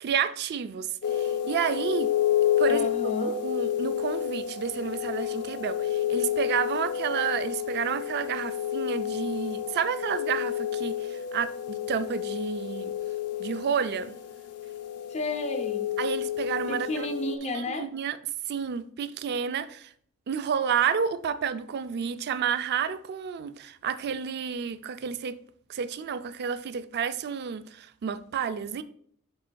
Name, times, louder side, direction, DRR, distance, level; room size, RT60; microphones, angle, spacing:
voice 1, 0.0-2.1 2.6-2.9 3.2-12.9 13.4-14.2 16.0-17.1 17.5-18.2 18.5-19.9 20.3-25.4 25.7-28.8, right 7 dB, 45° right, 0.3 m, -30 dB
sound 1, 1.0-17.4, left 10 dB, 90° left, 0.5 m, -30 dB
voice 2, 2.7-3.4 15.1-15.9 16.7-17.8, left 2 dB, 30° left, 0.5 m, -32 dB
10.0 x 4.3 x 2.2 m
head